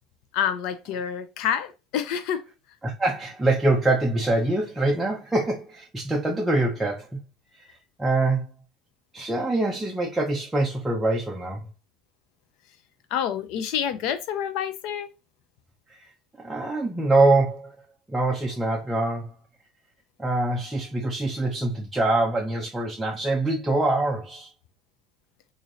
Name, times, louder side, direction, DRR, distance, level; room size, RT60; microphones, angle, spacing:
voice 1, 0.3-2.4 13.1-15.1, left 9 dB, 70° left, 0.6 m, -28 dB
voice 2, 2.8-7.2 7.5-8.5 9.1-11.7 15.9-16.1 16.4-17.8 18.1-19.3 20.2-24.5, right 2 dB, 5° right, 0.6 m, -24 dB
3.1 x 2.7 x 3.9 m
cardioid pair, 150°, 0 cm